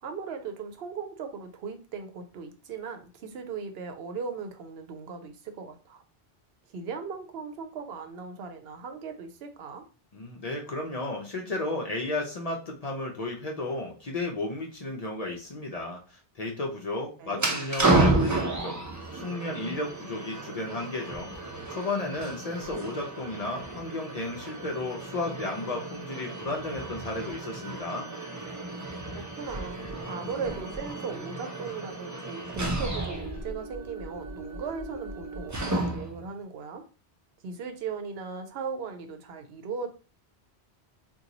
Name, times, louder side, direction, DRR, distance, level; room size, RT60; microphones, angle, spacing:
voice 1, 0.0-6.0 6.7-9.9 17.2-17.5 29.1-36.8 37.4-39.9, right 5 dB, 75° right, 6 dB, 0.8 m, -38 dB
voice 2, 10.1-18.8 19.1-21.3 21.7-28.1, left 2 dB, 45° left, 0 dB, 0.5 m, -33 dB
sound 1, 17.3-36.2, right 2 dB, 25° right, 0.4 m, -32 dB
2.9 x 2.3 x 3.9 m, 0.35 s
omnidirectional pair, 1.1 m